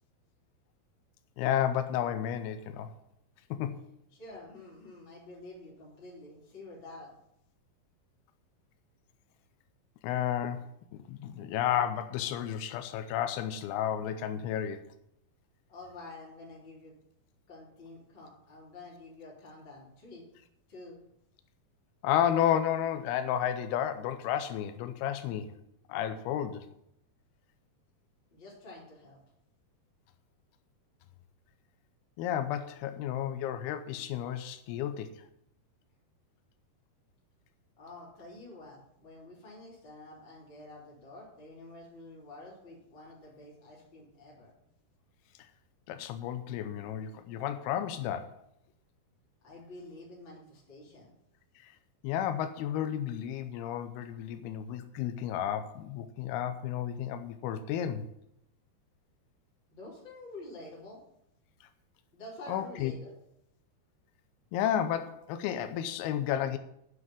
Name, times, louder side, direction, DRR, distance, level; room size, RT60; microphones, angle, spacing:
voice 1, 1.4-2.9 3.5-3.8 10.0-10.7 10.9-14.9 22.0-25.5 25.9-26.7 32.2-35.1 45.9-48.3 52.0-58.1 62.5-62.9 64.5-66.6, left 10 dB, 85° left, 9 dB, 2.7 m, -32 dB
voice 2, 4.2-7.1 15.7-16.9 17.5-20.3 20.7-21.0 28.3-29.2 37.8-44.5 49.4-51.1 59.7-61.0 62.1-63.1, left 2 dB, 30° left, -5 dB, 3.5 m, -48 dB
9.7 x 6.2 x 7.4 m, 0.76 s
omnidirectional pair, 4.5 m